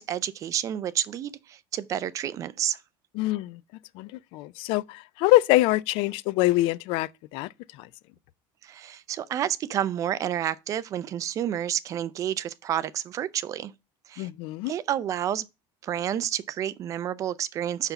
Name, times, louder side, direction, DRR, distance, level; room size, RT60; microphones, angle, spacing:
voice 1, 0.0-2.8 8.6-13.7 14.1-14.3 14.7-15.5 15.8-17.9, right 10 dB, 30° right, 0.4 m, -30 dB
voice 2, 3.1-3.6 3.9-7.9 14.2-14.7, left 18 dB, 60° left, 0.4 m, -25 dB
5.8 x 5.5 x 5.8 m
cardioid pair, 165°, 11 cm